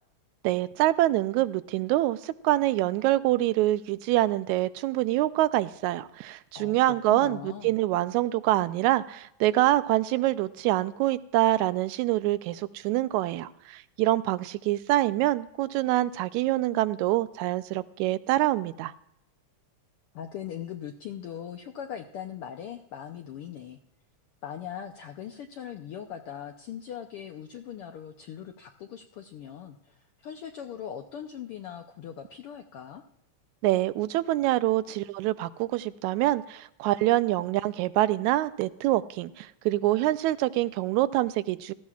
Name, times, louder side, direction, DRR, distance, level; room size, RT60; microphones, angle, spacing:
voice 1, 0.4-18.9 33.6-41.7, right 15 dB, 80° right, 14 dB, 1.9 m, -25 dB
voice 2, 6.5-7.8 20.1-23.8 24.4-33.0, left 9 dB, 85° left, 5 dB, 1.2 m, -40 dB
17.5 x 14.0 x 2.4 m, 0.79 s
omnidirectional pair, 3.4 m